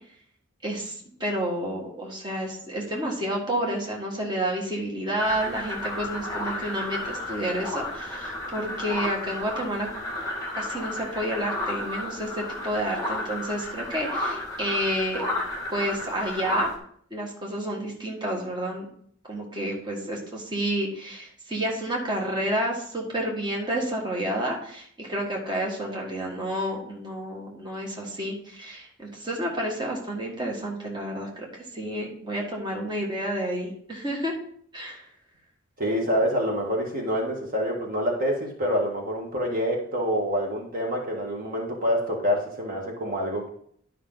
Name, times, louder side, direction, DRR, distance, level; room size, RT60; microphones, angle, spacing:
voice 1, 0.6-9.9 10.6-15.2 15.7-16.7 17.1-18.9 19.3-34.3 34.7-35.0, right 1 dB, 25° right, -2 dB, 1.7 m, -30 dB
sound 1, 5.2-16.8, left 1 dB, 15° left, 2.0 m, -32 dB
voice 2, 35.8-43.5, equal, 45° right, 0 dB, 1.6 m, -26 dB
11.0 x 5.6 x 3.9 m, 0.63 s
head